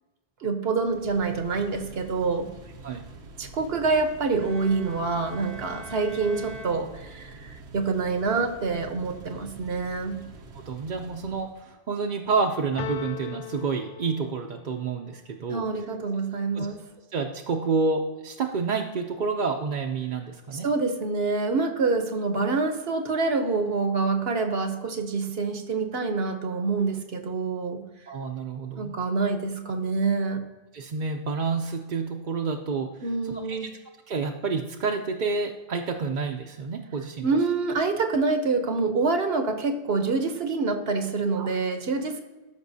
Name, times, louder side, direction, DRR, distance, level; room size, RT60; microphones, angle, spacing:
voice 1, 0.4-2.5 3.4-10.2 15.5-16.8 20.5-27.8 28.8-30.4 33.0-33.7 37.2-42.2, right 4 dB, 70° right, 7 dB, 1.1 m, -26 dB
sound 1, 0.8-11.6, right 3 dB, 90° right, 1.1 m, -46 dB
Bowed string instrument, 4.4-7.5, equal, 35° left, 1.9 m, -44 dB
voice 2, 10.5-15.6 16.6-16.7 17.1-20.7 28.1-28.9 30.7-32.9 33.3-33.6 34.1-37.3 41.4-41.5, right 4 dB, 55° right, 2 dB, 0.7 m, -29 dB
sound 2, 12.8-14.7, left 10 dB, 60° left, 0.7 m, -38 dB
13.5 x 5.4 x 2.7 m, 1.2 s
omnidirectional pair, 1.1 m